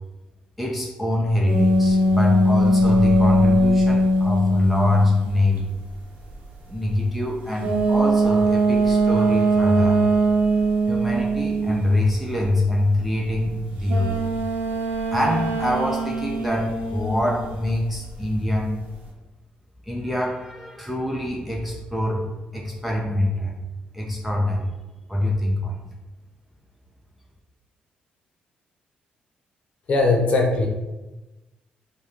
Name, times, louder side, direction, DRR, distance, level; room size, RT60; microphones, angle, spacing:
voice 1, 0.6-5.7 6.7-10.1 10.9-14.4 15.1-18.8 19.9-23.6 23.9-24.7 25.1-25.8, left 1 dB, 5° right, -2 dB, 0.4 m, -24 dB
sound 1, 1.5-5.3 7.6-11.9 13.9-17.7, right 1 dB, 65° right, 0.9 m, -20 dB
voice 2, 29.9-30.7, left 3 dB, 40° left, 0 dB, 0.8 m, -19 dB
5.3 x 2.3 x 3.2 m, 1.1 s
cardioid pair, 160°, 3 cm